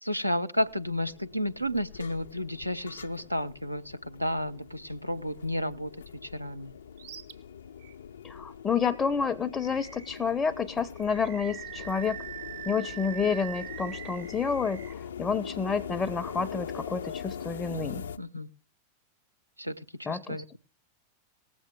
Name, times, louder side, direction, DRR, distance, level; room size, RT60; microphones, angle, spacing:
voice 1, 0.0-5.9 6.2-6.7 17.7-18.5 19.6-19.8 20.1-20.6, equal, 90° right, 9 dB, 0.5 m, -32 dB
sound 1, 0.6-18.2, left 8 dB, 65° left, 0.4 m, -42 dB
Animal, 7.0-7.3 7.8-7.9 9.6-10.3 11.0-14.9, right 10 dB, 55° right, 0.8 m, -43 dB
voice 2, 8.2-12.2 12.7-18.1 20.1-20.4, left 5 dB, 15° left, 10 dB, 0.5 m, -29 dB
18.5 x 7.6 x 3.6 m, 0.41 s
figure-of-eight pair, 90°, 0 cm